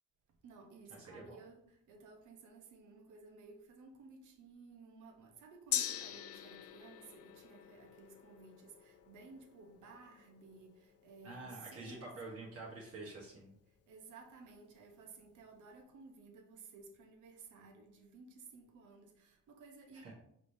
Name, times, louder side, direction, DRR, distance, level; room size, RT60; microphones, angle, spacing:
voice 1, 0.4-12.5 13.9-20.1, right 4 dB, 80° right, 0.9 m, -56 dB
voice 2, 1.0-1.4 11.2-13.5 19.9-20.1, right 3 dB, 50° right, 1.2 m, -48 dB
Gong, 5.7-13.5 13.8-13.9, left 10 dB, 55° left, 0.4 m, -44 dB
4.9 x 3.2 x 2.7 m
cardioid pair, 90°, 30 cm